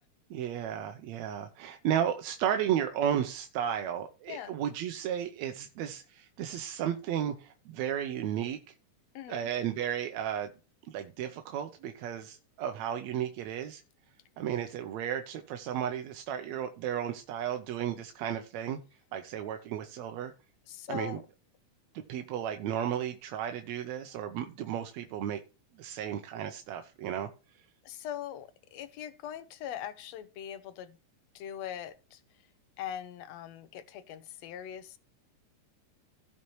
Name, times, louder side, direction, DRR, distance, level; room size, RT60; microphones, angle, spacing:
voice 1, 0.3-8.6 9.3-10.5 10.9-13.8 14.4-18.8 19.1-20.3 20.9-21.2 21.9-25.4 25.8-27.3, right 9 dB, 70° right, 1.8 m, -33 dB
voice 2, 4.3-4.6 9.1-9.5 20.7-21.2 27.8-31.0 31.4-32.2 32.8-35.0, left 10 dB, 70° left, 1.8 m, -41 dB
16.5 x 5.6 x 3.1 m
omnidirectional pair, 3.6 m